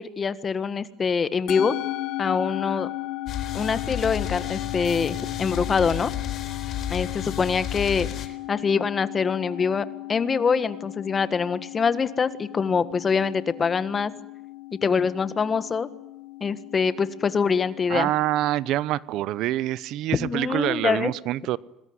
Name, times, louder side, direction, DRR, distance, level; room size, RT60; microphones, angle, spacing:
voice 1, 0.0-1.7 2.2-2.9 3.5-6.1 6.9-14.1 14.8-15.9 16.4-18.1 20.1-21.1, left 5 dB, 30° left, 14 dB, 1.6 m, -24 dB
Musical instrument, 1.5-20.0, left 18 dB, 70° left, 1.4 m, -36 dB
sound 1, 3.3-8.3, left 10 dB, 50° left, 4.1 m, -32 dB
voice 2, 17.9-21.6, right 14 dB, 65° right, 20 dB, 0.9 m, -26 dB
26.5 x 20.5 x 9.6 m, 0.88 s
cardioid pair, 130°, 0 cm